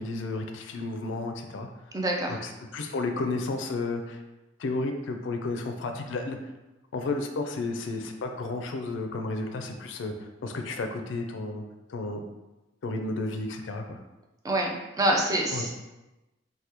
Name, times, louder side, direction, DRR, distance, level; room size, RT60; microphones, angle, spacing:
voice 1, 0.0-1.7 2.4-4.2 4.6-6.4 6.9-11.6 11.9-12.2 12.8-14.0 15.5-15.7, left 3 dB, 75° left, 5 dB, 0.4 m, -32 dB
voice 2, 1.9-2.4 14.4-15.7, right 1 dB, 20° right, 0 dB, 0.4 m, -26 dB
2.9 x 2.1 x 3.4 m, 1.0 s
head